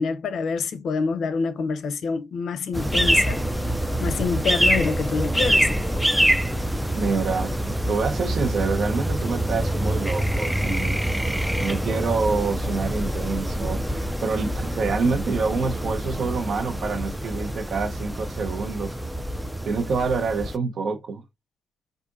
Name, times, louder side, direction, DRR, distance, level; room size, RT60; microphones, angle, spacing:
voice 1, 0.0-3.4 4.0-5.7, left 5 dB, 70° left, 0.5 m, -26 dB
sound 1, 2.7-20.6, equal, 5° right, 0.3 m, -25 dB
voice 2, 6.9-11.0 11.6-18.9 19.6-21.2, right 4 dB, 60° right, 0.9 m, -27 dB
4.6 x 2.5 x 2.5 m
cardioid pair, 95°, 0 cm